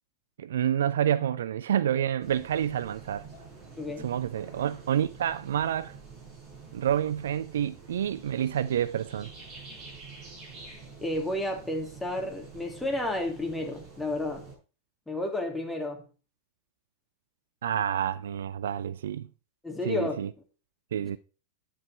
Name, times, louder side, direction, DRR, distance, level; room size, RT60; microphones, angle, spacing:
voice 1, 0.4-3.2 4.0-6.0 6.7-9.3 17.6-19.3 19.9-20.3 20.9-21.2, right 10 dB, 60° right, 0.4 m, -28 dB
sound 1, 2.2-14.5, right 4 dB, 40° right, 6.9 m, -47 dB
voice 2, 3.8-4.1 11.0-14.4 15.1-16.0 19.6-20.2, left 2 dB, 5° left, 2.8 m, -31 dB
9.6 x 8.2 x 4.5 m
figure-of-eight pair, 90°, 0 cm